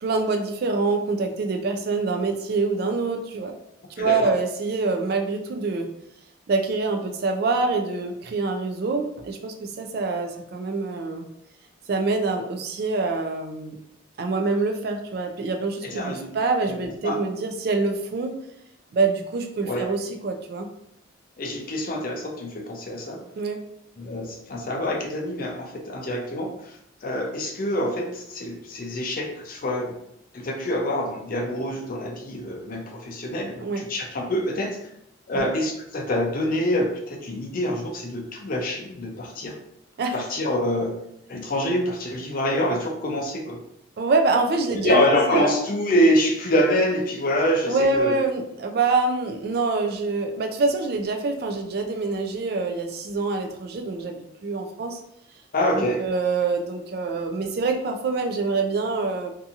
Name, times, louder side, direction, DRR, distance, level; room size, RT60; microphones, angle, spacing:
voice 1, 0.0-3.5 4.0-5.9 6.5-11.3 11.9-13.8 14.2-18.4 18.9-20.7 23.4-23.6 33.6-33.8 35.3-35.5 40.0-40.2 44.0-45.0 45.3-45.5 47.7-55.0 55.8-59.3, right 3 dB, 50° right, 5 dB, 0.3 m, -25 dB
voice 2, 4.0-4.3 15.9-16.3 17.0-17.2 19.7-19.9 21.4-23.2 24.0-26.8 27.0-29.9 30.3-34.7 35.3-39.5 40.1-40.9 41.3-43.6 44.7-48.1 55.5-56.0, equal, 45° left, 1 dB, 0.5 m, -25 dB
2.7 x 2.6 x 2.4 m, 0.75 s
head